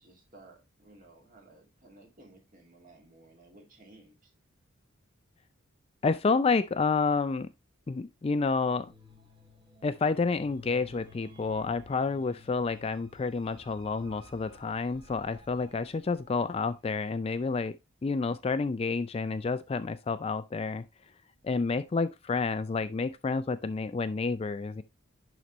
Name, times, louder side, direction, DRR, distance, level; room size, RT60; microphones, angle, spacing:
voice 1, 0.0-4.3, right 2 dB, 40° right, 2.2 m, -56 dB
voice 2, 6.0-7.5 7.9-8.9 9.8-17.7 18.0-20.8 21.4-24.8, left 4 dB, 30° left, 0.3 m, -29 dB
sound 1, 8.5-16.8, left 2 dB, 20° right, 1.3 m, -55 dB
11.0 x 4.0 x 3.0 m
head